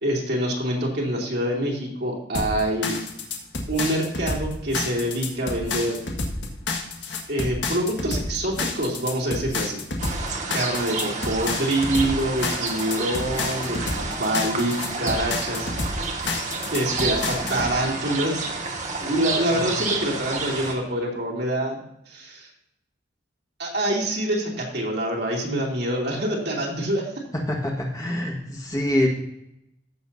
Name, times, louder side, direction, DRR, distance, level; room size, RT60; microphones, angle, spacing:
voice 1, 0.0-2.9 3.7-6.0 7.3-9.8 10.5-15.7 16.7-18.5 19.0-21.8 22.1-22.5 23.6-27.1, right 1 dB, 60° right, -2 dB, 2.7 m, -26 dB
sound 1, 2.3-17.7, left 3 dB, 80° left, 1.7 m, -29 dB
sound 2, 10.0-20.8, right 3 dB, 40° right, 1.5 m, -30 dB
voice 2, 27.6-29.1, left 1 dB, 20° left, -1 dB, 1.6 m, -25 dB
15.0 x 7.0 x 2.7 m, 0.83 s
head